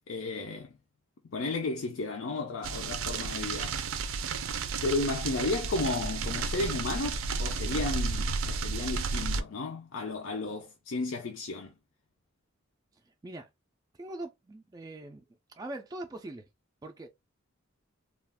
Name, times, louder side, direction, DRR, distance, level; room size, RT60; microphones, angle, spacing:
voice 1, 0.1-0.7 1.3-3.8 4.8-11.7, left 3 dB, 75° left, 0.5 m, -33 dB
sound 1, 2.6-9.4, right 4 dB, 85° right, 0.4 m, -32 dB
voice 2, 13.0-13.5 14.0-16.5 16.8-17.1, right 1 dB, 20° right, 0.3 m, -42 dB
2.4 x 2.3 x 3.4 m
head